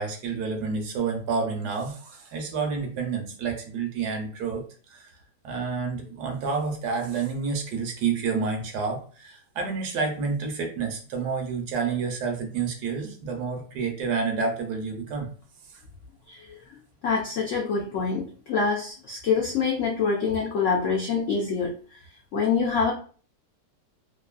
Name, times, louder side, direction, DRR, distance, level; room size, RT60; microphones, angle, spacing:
voice 1, 0.0-4.6 4.9-5.1 5.4-15.3, right 5 dB, 75° right, 3 dB, 1.1 m, -29 dB
voice 2, 16.3-22.0 22.3-22.9, left 5 dB, 90° left, -2 dB, 0.6 m, -26 dB
3.0 x 2.5 x 2.3 m, 0.42 s
omnidirectional pair, 1.9 m